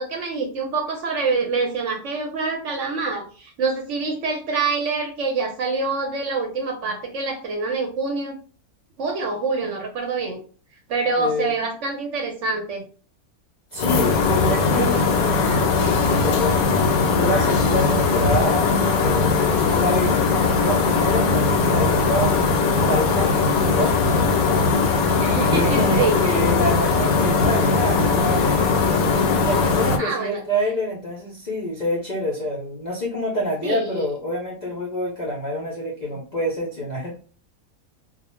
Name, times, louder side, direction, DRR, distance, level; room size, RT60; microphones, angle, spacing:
voice 1, 0.0-8.4 9.0-10.4 10.9-12.8 25.2-26.4 30.0-30.4 33.6-34.0, right 4 dB, 65° right, 2 dB, 0.9 m, -26 dB
voice 2, 11.2-11.5 13.7-16.6 17.1-18.7 19.0-22.4 22.8-23.9 25.5-28.6 29.4-37.2, left 1 dB, 50° left, -4 dB, 0.5 m, -27 dB
sound 1, 13.8-30.0, left 4 dB, 75° left, 1.0 m, -19 dB
2.4 x 2.0 x 2.9 m, 0.40 s
omnidirectional pair, 1.5 m